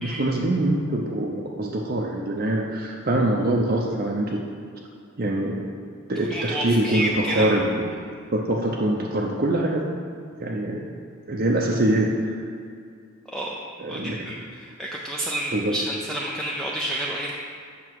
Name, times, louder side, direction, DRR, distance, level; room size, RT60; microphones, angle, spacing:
voice 1, 0.0-4.4 5.2-5.7 6.1-7.7 8.3-9.9 10.4-10.8 11.3-12.4 13.8-14.3 15.5-15.8, right 1 dB, 45° right, -2 dB, 0.6 m, -24 dB
voice 2, 6.3-7.5 13.3-13.6 13.9-17.3, right 1 dB, ahead, -4 dB, 0.5 m, -29 dB
7.8 x 6.0 x 4.6 m, 2.3 s
head